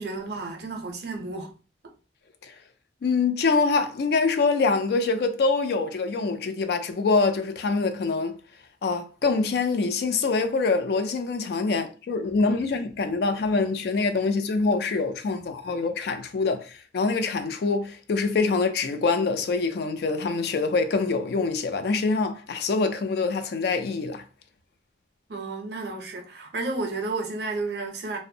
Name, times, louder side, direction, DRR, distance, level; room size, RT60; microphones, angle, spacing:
voice 1, 0.0-1.5 25.3-28.2, right 3 dB, 60° right, 0.5 m, -32 dB
voice 2, 3.0-8.4 8.8-24.2, left 4 dB, 60° left, 0.3 m, -25 dB
2.5 x 2.1 x 2.6 m
head